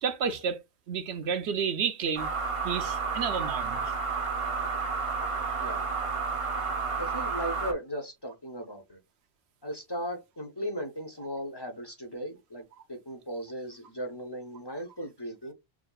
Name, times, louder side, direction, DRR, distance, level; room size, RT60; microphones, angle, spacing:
voice 1, 0.0-0.6 0.9-2.3 2.6-3.9 11.2-11.3, right 6 dB, 80° right, 0.9 m, -31 dB
sound 1, 2.2-7.7, right 4 dB, 35° right, 0.7 m, -31 dB
voice 2, 5.6-5.9 7.0-9.0 9.6-12.6 12.9-15.5, equal, 25° left, 0.7 m, -37 dB
6.0 x 2.6 x 2.3 m
omnidirectional pair, 1.1 m